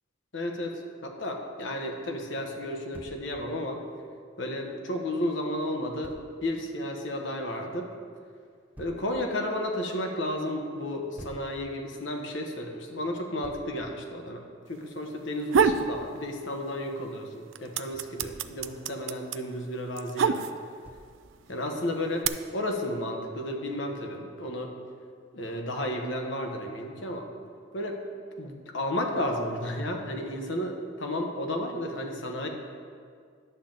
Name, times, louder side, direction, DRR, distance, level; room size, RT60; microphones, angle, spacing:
voice 1, 0.3-3.8 4.4-6.1 6.4-7.9 8.8-20.5 21.5-24.7 25.3-27.3 27.7-28.0 28.4-32.5, left 1 dB, 75° left, 2 dB, 1.1 m, -33 dB
Thump thud, 2.9-3.2 6.0-6.2 8.8-9.0 11.2-11.5 13.4-13.7 15.5-15.9 17.9-18.5 20.8-21.2, equal, 10° right, 0.5 m, -46 dB
sound 1, 15.2-15.9 16.3-17.0 17.3-20.9 21.6-22.3, right 6 dB, 85° right, 0.4 m, -26 dB
11.0 x 3.9 x 7.4 m, 2.1 s
head